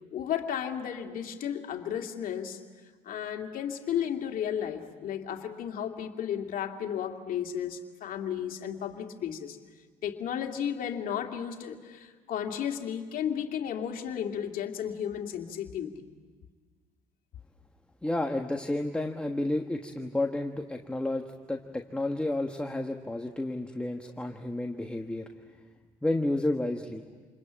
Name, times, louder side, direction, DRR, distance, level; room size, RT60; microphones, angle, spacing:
voice 1, 0.1-2.6 3.0-9.6 10.0-16.0, left 9 dB, 60° left, 3 dB, 2.4 m, -33 dB
voice 2, 18.0-25.2 26.0-27.0, left 1 dB, 5° left, 3 dB, 1.4 m, -31 dB
28.0 x 21.5 x 8.7 m, 1.5 s
supercardioid pair, 85°, 16 cm